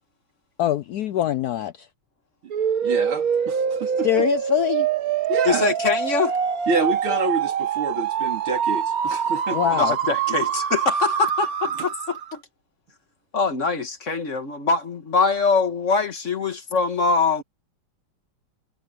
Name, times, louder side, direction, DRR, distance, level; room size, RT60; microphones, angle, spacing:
voice 1, 0.6-1.9 4.0-4.9 9.5-10.0, left 12 dB, 85° left, 0.8 m, -23 dB
sound 1, 2.5-12.4, right 8 dB, 50° right, 1.3 m, -25 dB
voice 2, 2.8-4.1 5.3-5.7 6.7-9.6, right 3 dB, 90° right, 3.8 m, -27 dB
voice 3, 5.4-6.4 9.8-12.4 13.3-17.4, left 4 dB, 40° left, 1.7 m, -23 dB
omnidirectional pair, 2.2 m